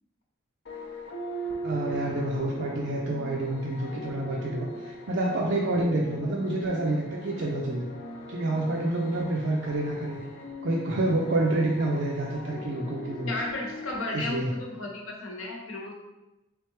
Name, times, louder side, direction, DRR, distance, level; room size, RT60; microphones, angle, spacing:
sound 1, 0.7-14.4, right 1 dB, 55° left, 0.5 m, -39 dB
voice 1, 1.6-7.9 8.3-10.2 10.6-13.3 14.1-14.5, right 2 dB, 60° right, -2 dB, 0.4 m, -28 dB
voice 2, 13.2-15.9, left 2 dB, 85° left, 0 dB, 0.9 m, -34 dB
3.7 x 3.2 x 3.1 m, 0.98 s
head